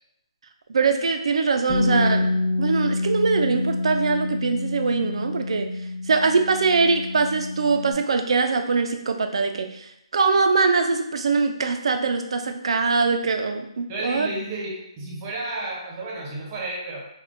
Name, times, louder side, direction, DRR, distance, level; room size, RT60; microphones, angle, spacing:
voice 1, 0.7-5.7 6.1-14.3, right 4 dB, 65° right, 6 dB, 0.4 m, -22 dB
Bass guitar, 1.7-7.9, left 2 dB, 40° left, 1.0 m, -27 dB
voice 2, 13.9-17.0, right 2 dB, 20° right, -3 dB, 0.6 m, -32 dB
3.5 x 2.2 x 2.5 m, 0.82 s
hypercardioid pair, 170°, 3 cm